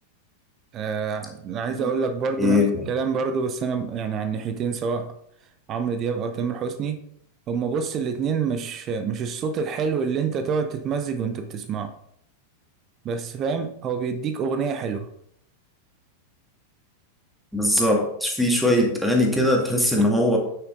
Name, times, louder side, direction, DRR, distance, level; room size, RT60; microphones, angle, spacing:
voice 1, 0.7-5.1 5.7-7.0 7.5-11.9 13.0-15.1 20.0-20.1, right 5 dB, 30° right, 0.7 m, -27 dB
voice 2, 2.4-2.9 17.5-20.4, left 1 dB, ahead, 2.1 m, -20 dB
9.2 x 6.2 x 3.8 m
figure-of-eight pair, 90°, 0 cm